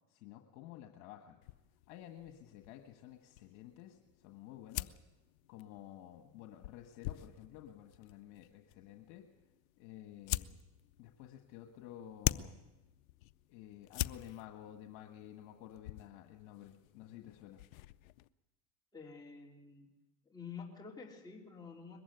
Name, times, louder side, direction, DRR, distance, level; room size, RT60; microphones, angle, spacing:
voice 1, 0.1-1.4 1.9-4.9 5.5-9.3 9.8-10.6 11.0-12.6 13.5-17.6, left 12 dB, 70° left, 4 dB, 1.7 m, -52 dB
sound 1, 1.4-18.3, left 16 dB, 85° left, 0.7 m, -45 dB
voice 2, 18.9-19.9 20.3-22.0, left 5 dB, 10° left, -2 dB, 3.3 m, -49 dB
21.5 x 15.0 x 9.5 m, 1.1 s
supercardioid pair, 100°, 41 cm